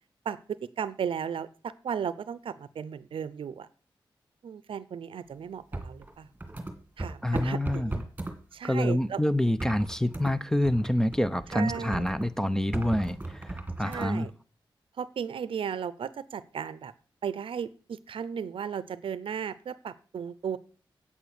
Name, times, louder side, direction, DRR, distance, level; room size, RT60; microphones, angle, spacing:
voice 1, 0.2-3.7 4.4-6.3 7.0-8.1 8.5-9.2 11.5-12.1 13.8-14.3 15.0-16.9 17.2-20.6, right 7 dB, 80° right, 0.7 m, -35 dB
sound 1, 5.7-8.4 9.6-10.3 10.6-12.3 12.7-14.1, right 2 dB, 20° right, 2.6 m, -36 dB
voice 2, 7.2-8.0 8.6-13.5 13.8-14.3, left 1 dB, 5° left, 0.8 m, -27 dB
8.6 x 8.3 x 6.9 m
cardioid pair, 65°, 9 cm